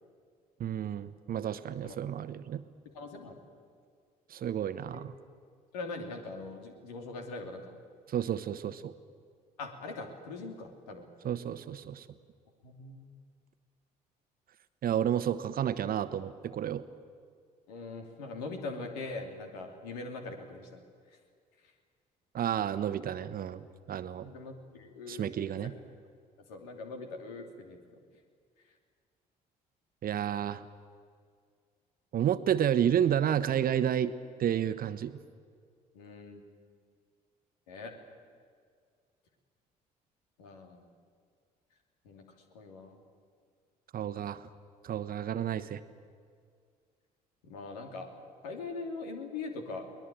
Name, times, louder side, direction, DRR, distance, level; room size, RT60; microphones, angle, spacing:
voice 1, 0.6-2.6 4.3-5.1 8.1-8.9 11.2-12.0 14.8-16.8 22.3-24.3 25.1-25.7 30.0-30.6 32.1-34.1 34.4-35.1 43.9-44.4 44.8-45.8, right 9 dB, 45° right, 13 dB, 1.2 m, -31 dB
voice 2, 2.8-3.4 4.9-5.0 5.7-7.8 9.6-11.1 12.6-13.1 17.7-20.8 21.1-21.2 21.6-21.7 24.2-25.7 26.5-27.8 28.6-28.7 35.9-36.4 37.7-37.9 40.4-40.9 42.0-42.3 42.5-43.0 47.4-48.1 48.4-49.8, left 3 dB, 75° left, 4 dB, 2.9 m, -42 dB
22.5 x 20.0 x 9.0 m, 2.1 s
figure-of-eight pair, 50°, 20 cm